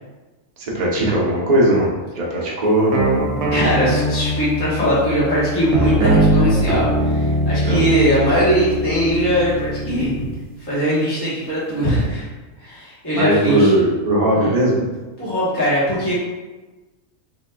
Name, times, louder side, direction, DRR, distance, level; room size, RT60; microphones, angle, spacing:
voice 1, 0.6-3.0 7.6-7.8 13.1-14.9, right 1 dB, 40° right, -4 dB, 0.7 m, -18 dB
sound 1, 2.9-10.4, right 1 dB, 90° right, 1.0 m, -21 dB
voice 2, 3.5-10.1 10.6-12.3 12.6-13.7 14.3-14.5 15.2-16.2, equal, 20° left, -9 dB, 1.0 m, -20 dB
4.0 x 3.1 x 2.2 m, 1.2 s
omnidirectional pair, 1.4 m